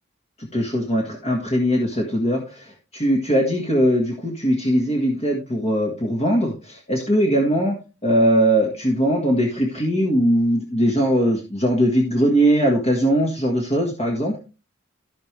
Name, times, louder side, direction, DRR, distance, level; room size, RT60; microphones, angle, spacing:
voice 1, 0.4-7.7 8.0-14.4, equal, 35° left, -1 dB, 1.8 m, -20 dB
14.5 x 5.2 x 3.3 m, 0.32 s
head